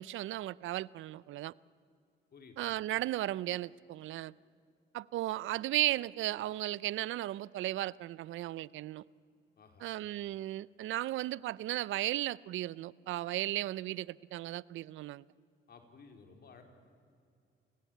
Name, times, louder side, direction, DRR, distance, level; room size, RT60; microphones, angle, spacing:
voice 1, 0.0-1.5 2.6-4.3 4.9-9.0 9.8-15.2, right 15 dB, 80° right, 0.5 m, -35 dB
voice 2, 2.3-2.8 9.6-9.9 15.7-16.6, left 4 dB, 55° left, 4.0 m, -56 dB
28.0 x 17.5 x 9.2 m
cardioid pair, 90°, 20 cm